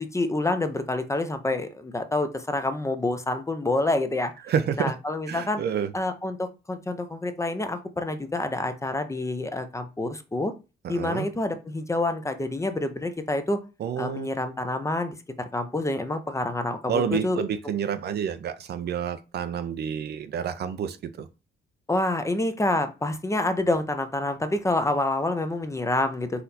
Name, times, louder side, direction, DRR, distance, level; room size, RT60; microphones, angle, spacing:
voice 1, 0.0-4.3 4.8-5.6 5.9-10.5 10.9-13.6 14.0-17.4 21.9-26.4, left 2 dB, 15° left, 0.6 m, -27 dB
voice 2, 4.5-4.9 5.3-5.9 10.8-11.3 13.8-14.3 16.9-21.3, right 8 dB, 55° right, 0.5 m, -29 dB
4.2 x 2.6 x 4.1 m
cardioid pair, 90°, 20 cm